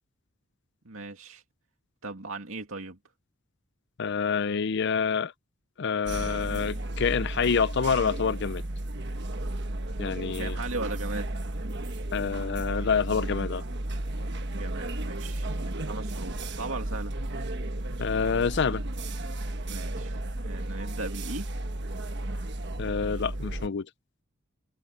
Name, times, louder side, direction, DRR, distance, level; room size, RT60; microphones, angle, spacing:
voice 1, 0.8-1.4 2.0-3.0 10.1-11.3 14.5-17.1 19.7-20.2 20.4-21.5, right 3 dB, 70° right, 2.3 m, -38 dB
voice 2, 4.0-5.3 5.8-8.6 10.0-10.6 12.1-13.6 18.0-18.8 22.8-23.9, left 6 dB, 55° left, 0.5 m, -27 dB
sound 1, 6.0-23.7, right 1 dB, 55° right, 1.3 m, -33 dB
head